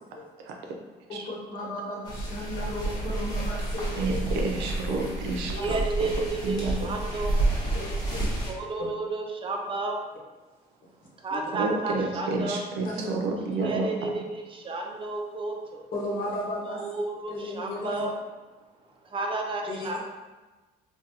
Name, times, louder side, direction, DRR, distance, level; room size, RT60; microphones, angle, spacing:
voice 1, 0.4-0.8 1.1-1.3 3.9-5.8 6.4-6.7 11.5-13.9 14.2-14.3, right 3 dB, 90° right, 1 dB, 0.6 m, -30 dB
voice 2, 1.1-4.2 4.9-5.0 5.6-5.8 7.7-8.2 11.3-11.4 12.9-13.1 15.9-16.8 17.3-18.1 19.7-20.0, left 1 dB, 55° left, -4 dB, 1.1 m, -35 dB
sound 1, 2.0-8.5, right 2 dB, 20° left, 1.0 m, -30 dB
voice 3, 5.5-7.4 8.5-10.0 11.2-12.6 13.6-15.8 16.8-18.1 19.1-20.0, right 3 dB, 30° right, 2 dB, 0.5 m, -32 dB
3.7 x 2.3 x 2.7 m, 1.2 s
cardioid pair, 110°, 17 cm